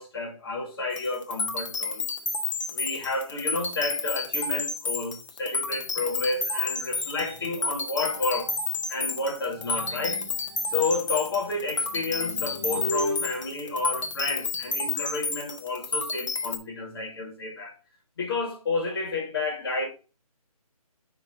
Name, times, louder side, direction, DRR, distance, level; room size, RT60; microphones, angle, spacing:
voice 1, 0.0-2.1 2.7-8.5 8.9-10.2 10.7-17.8 18.2-19.9, left 3 dB, 40° left, 2.3 m, -30 dB
sound 1, 0.9-16.6, left 4 dB, 55° left, 1.5 m, -31 dB
sound 2, 5.8-8.9 9.4-14.6, left 1 dB, 5° left, 0.4 m, -39 dB
10.0 x 3.7 x 4.0 m
hypercardioid pair, 165°, 19 cm